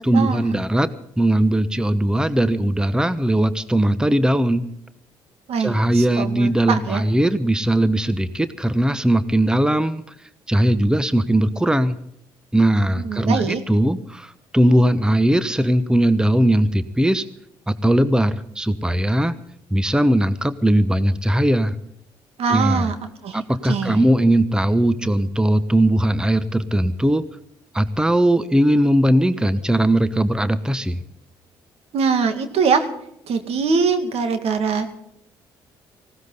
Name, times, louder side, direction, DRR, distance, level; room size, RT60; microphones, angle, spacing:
voice 1, 0.0-0.9 1.2-4.6 5.6-10.0 10.5-12.0 12.5-17.2 17.7-19.3 19.7-21.7 22.5-22.9 23.3-27.2 27.7-31.0, right 1 dB, 5° right, 14 dB, 1.1 m, -19 dB
voice 2, 5.5-7.0 13.0-13.6 22.4-23.0 23.2-23.4 23.6-24.0 31.9-32.9 33.3-34.9, right 5 dB, 65° right, 8 dB, 2.2 m, -22 dB
19.5 x 17.0 x 4.0 m, 0.73 s
hypercardioid pair, 50°, 11 cm